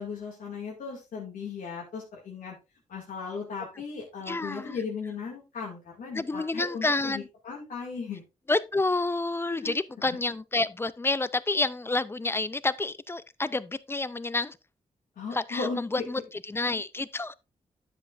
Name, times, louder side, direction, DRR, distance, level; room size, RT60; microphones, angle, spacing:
voice 1, 0.0-2.5 2.9-8.2 9.6-9.7 15.2-15.8, left 5 dB, 85° left, 2.2 m, -36 dB
voice 2, 4.3-4.8 6.1-7.3 8.5-14.6 15.3-17.3, left 2 dB, 15° left, 0.5 m, -29 dB
10.0 x 7.7 x 2.5 m
cardioid pair, 95°, 14 cm